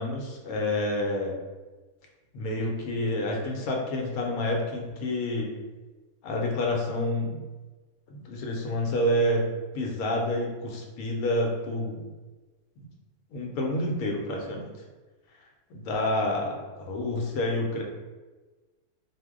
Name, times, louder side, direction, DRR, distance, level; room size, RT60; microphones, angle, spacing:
voice 1, 0.0-1.3 2.3-5.5 6.2-7.4 8.1-9.4 9.7-12.1 12.8-12.9 13.3-14.7 15.7-17.8, left 1 dB, 75° left, 0 dB, 1.0 m, -28 dB
2.6 x 2.1 x 3.5 m, 1.3 s
omnidirectional pair, 1.6 m